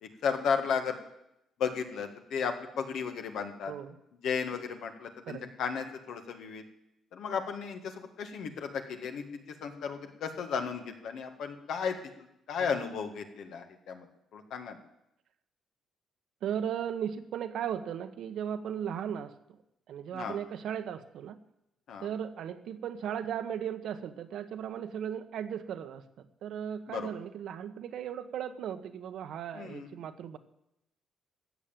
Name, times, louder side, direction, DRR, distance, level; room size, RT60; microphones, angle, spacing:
voice 1, 0.0-1.0 1.6-3.7 4.2-6.6 7.1-12.0 12.5-14.1 14.3-14.8 20.1-20.4 21.9-22.1 26.9-27.1 29.5-29.9, left 6 dB, 75° left, 5 dB, 1.8 m, -34 dB
voice 2, 16.4-19.6 19.9-21.4 22.0-30.4, right 9 dB, 75° right, 10 dB, 1.1 m, -37 dB
14.5 x 7.4 x 9.0 m, 0.84 s
cardioid pair, 90°, 0 cm